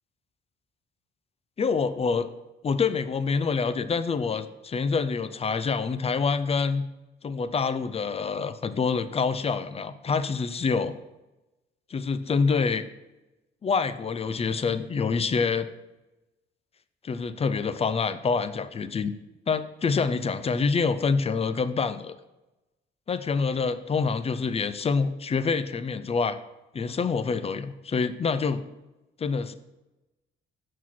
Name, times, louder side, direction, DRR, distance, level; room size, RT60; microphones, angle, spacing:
voice 1, 1.6-2.3 2.6-6.8 7.2-10.9 11.9-12.8 13.6-15.7 17.0-19.1 19.5-22.1 23.1-26.4 26.7-28.6 29.2-29.5, left 5 dB, 30° left, 13 dB, 0.5 m, -26 dB
6.0 x 4.6 x 5.9 m, 1.0 s
cardioid pair, 90°, 20 cm